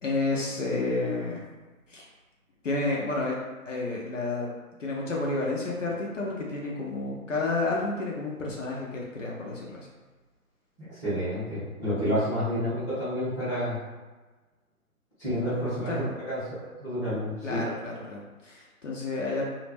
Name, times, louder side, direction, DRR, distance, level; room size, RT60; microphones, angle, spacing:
voice 1, 0.0-1.5 1.9-2.1 2.6-3.4 3.7-4.5 4.8-9.9 12.0-12.2 15.4-15.6 15.9-16.1 17.4-19.4, left 3 dB, 60° left, -3 dB, 0.5 m, -30 dB
voice 2, 10.8-13.8 15.2-15.9 16.2-17.6, equal, 10° left, -19 dB, 0.6 m, -29 dB
2.1 x 2.0 x 3.2 m, 1.2 s
hypercardioid pair, 160°, 44 cm